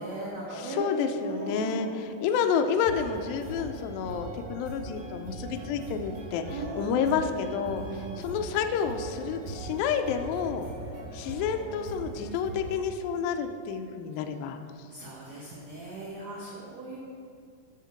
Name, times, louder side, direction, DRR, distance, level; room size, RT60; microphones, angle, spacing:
voice 1, 0.0-0.9 1.2-2.0 6.5-7.0 7.8-8.3 14.9-17.0, right 2 dB, 80° right, -4 dB, 1.6 m, -38 dB
voice 2, 0.5-10.7 11.1-14.6, left 6 dB, 85° left, 6 dB, 2.1 m, -30 dB
sound 1, 2.8-12.8, right 2 dB, 65° right, 2.9 m, -41 dB
11.5 x 6.6 x 5.2 m, 2.3 s
omnidirectional pair, 4.8 m